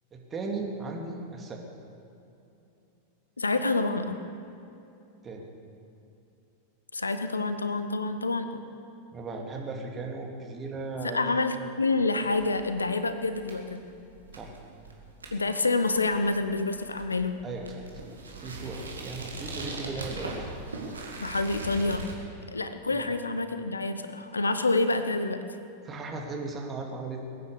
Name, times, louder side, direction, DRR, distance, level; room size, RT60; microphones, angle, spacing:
voice 1, 0.1-1.6 5.2-5.5 9.1-11.7 14.3-14.5 17.4-17.8 18.4-20.4 22.9-23.1 25.8-27.2, right 3 dB, 20° right, 1 dB, 2.5 m, -37 dB
voice 2, 3.4-4.2 6.9-8.6 11.0-13.8 15.3-17.4 21.2-22.0 22.5-25.4, left 3 dB, 80° left, 10 dB, 0.8 m, -27 dB
sound 1, 12.1-22.1, right 3 dB, 75° right, 2.3 m, -41 dB
21.5 x 9.5 x 6.8 m, 2.8 s
figure-of-eight pair, 90°, 0 cm